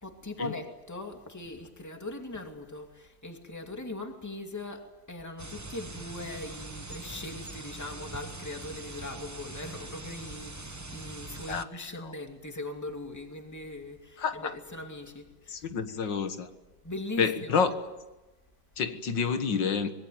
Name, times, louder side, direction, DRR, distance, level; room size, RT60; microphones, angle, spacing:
voice 1, 0.0-15.7 16.8-17.7, left 2 dB, 10° left, 2.4 m, -40 dB
sound 1, 5.4-11.6, right 2 dB, 15° right, 0.6 m, -42 dB
voice 2, 11.5-12.1 14.2-14.5 15.5-16.5 17.2-17.8 18.8-19.9, left 6 dB, 90° left, 2.2 m, -29 dB
25.0 x 21.0 x 9.4 m
omnidirectional pair, 1.9 m